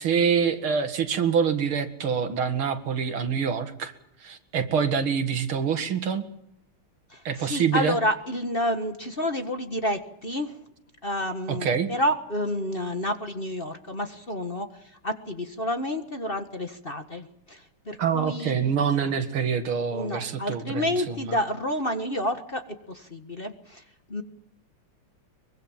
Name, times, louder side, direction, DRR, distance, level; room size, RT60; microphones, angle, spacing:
voice 1, 0.0-3.9 4.2-6.3 7.2-8.0 11.5-11.9 18.0-21.4, right 7 dB, 75° right, 8 dB, 2.7 m, -26 dB
voice 2, 7.1-10.5 11.0-14.7 15.0-18.7 19.9-22.6 22.9-23.8 24.1-24.2, left 1 dB, 30° left, 6 dB, 1.6 m, -29 dB
23.5 x 23.0 x 7.4 m, 0.77 s
omnidirectional pair, 2.3 m